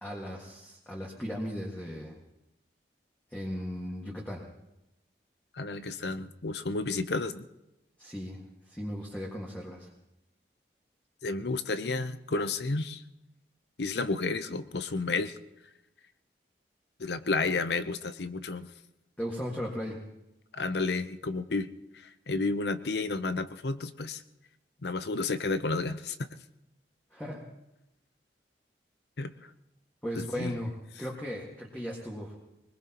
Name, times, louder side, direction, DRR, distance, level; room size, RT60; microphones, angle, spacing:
voice 1, 0.0-2.1 3.3-4.4 8.0-8.4 8.7-9.9 19.2-20.0 27.1-27.4 30.0-32.3, equal, 10° left, -3 dB, 1.8 m, -37 dB
voice 2, 5.6-7.4 11.2-13.0 13.8-15.3 17.0-18.7 20.5-21.7 22.3-24.2 24.8-26.2 29.2-29.3 30.2-30.5, left 3 dB, 70° left, 12 dB, 0.8 m, -31 dB
23.0 x 21.0 x 3.0 m, 0.92 s
head